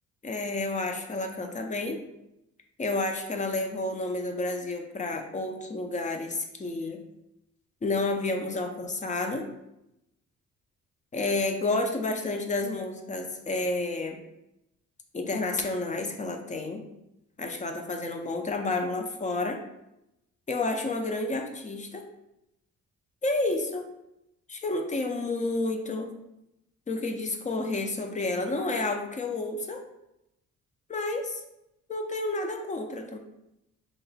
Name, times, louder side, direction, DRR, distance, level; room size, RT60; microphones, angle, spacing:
voice 1, 0.2-2.0 2.8-7.0 7.8-9.5 11.1-14.2 15.1-16.8 17.4-19.6 20.5-22.0 23.2-23.9 24.5-26.1 26.9-29.8 30.9-31.4 31.9-33.2, left 2 dB, 25° left, 4 dB, 0.5 m, -30 dB
3.0 x 2.1 x 4.0 m, 0.86 s
cardioid pair, 90°, 30 cm